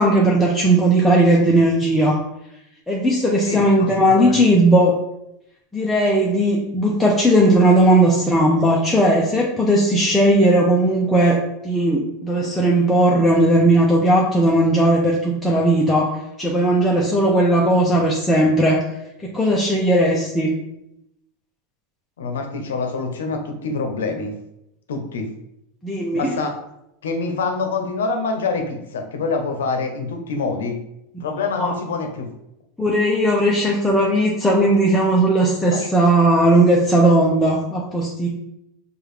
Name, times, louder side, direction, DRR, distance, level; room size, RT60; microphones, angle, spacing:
voice 1, 0.0-2.2 2.9-5.0 5.7-16.1 16.4-18.8 19.2-20.5 25.8-26.3 31.6-31.7 32.8-38.3, right 1 dB, 5° left, -4 dB, 0.6 m, -17 dB
voice 2, 3.4-4.4 22.2-24.3 24.9-25.3 26.1-26.6 27.0-30.8 31.2-32.3 35.7-35.9, left 4 dB, 90° left, 5 dB, 0.6 m, -26 dB
4.7 x 2.4 x 3.1 m, 0.83 s
supercardioid pair, 115°, 0 cm